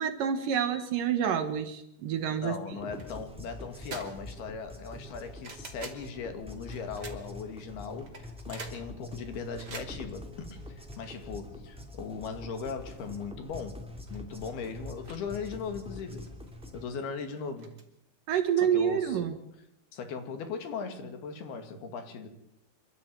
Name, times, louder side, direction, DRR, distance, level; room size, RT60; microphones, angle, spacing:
voice 1, 0.0-2.6 18.3-19.4, right 8 dB, 65° right, 8 dB, 2.6 m, -28 dB
voice 2, 2.4-16.3 16.7-17.8 18.6-19.2 19.9-22.3, left 5 dB, 70° left, 8 dB, 4.1 m, -39 dB
sound 1, 2.7-16.8, left 1 dB, ahead, 2.4 m, -45 dB
sound 2, 3.0-3.2 3.6-4.4 4.8-6.1 6.7-7.5 8.0-11.4 11.8-11.9 12.3-12.4 12.8-13.2 13.5-13.6 13.9-15.2 15.4-16.7 17.3-17.8, right 4 dB, 30° right, 2.8 m, -46 dB
27.0 x 13.5 x 9.0 m, 0.77 s
omnidirectional pair, 4.8 m